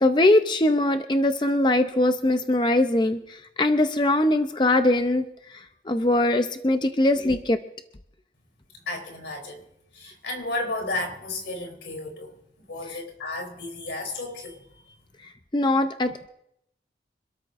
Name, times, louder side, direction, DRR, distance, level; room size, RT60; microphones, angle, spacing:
voice 1, 0.0-5.3 5.5-7.6 12.9-13.0 15.5-16.3, left 1 dB, 25° left, 8 dB, 0.6 m, -22 dB
voice 2, 8.9-9.6 9.9-12.4 12.7-14.6, left 2 dB, 90° left, 3 dB, 3.5 m, -33 dB
26.0 x 13.0 x 2.6 m, 0.76 s
head